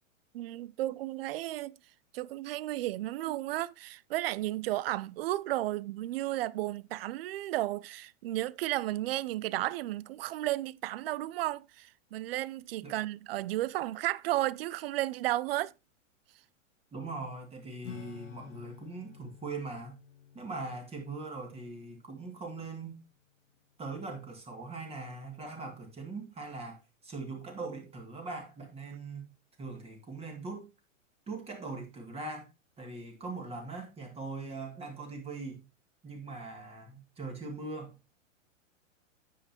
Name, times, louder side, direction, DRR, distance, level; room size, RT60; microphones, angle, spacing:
voice 1, 0.3-1.8 2.1-15.7, right 16 dB, 50° right, 0.5 m, -33 dB
voice 2, 16.9-20.0 20.3-23.0 23.8-29.3 29.6-30.7 31.3-32.5 32.8-35.6 36.0-37.9, right 3 dB, 15° right, 2.3 m, -41 dB
Acoustic guitar / Strum, 17.8-23.8, left 8 dB, 65° left, 1.4 m, -52 dB
9.8 x 8.2 x 2.9 m
hypercardioid pair, 135°, 39 cm